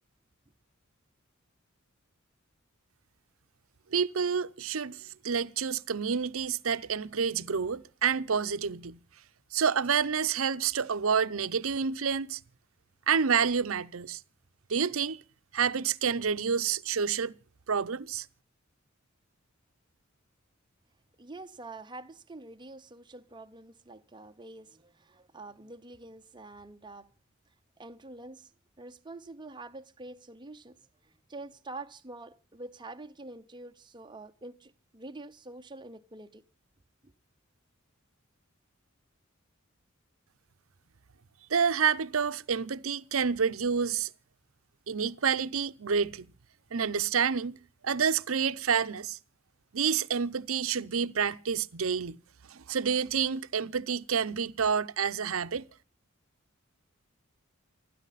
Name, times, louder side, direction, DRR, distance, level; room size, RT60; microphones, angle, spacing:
voice 1, 3.9-9.0 9.5-12.4 13.1-14.2 14.7-15.2 15.5-17.3 17.7-18.3 41.5-44.1 44.9-46.3 46.7-47.6 47.8-49.2 49.7-52.2 52.5-55.7, right 6 dB, 75° right, 0.7 m, -28 dB
voice 2, 21.2-27.1 27.8-28.5 28.8-30.8 31.0-36.4 37.0-37.1, right 2 dB, 20° right, 0.8 m, -46 dB
29.0 x 10.0 x 4.1 m
head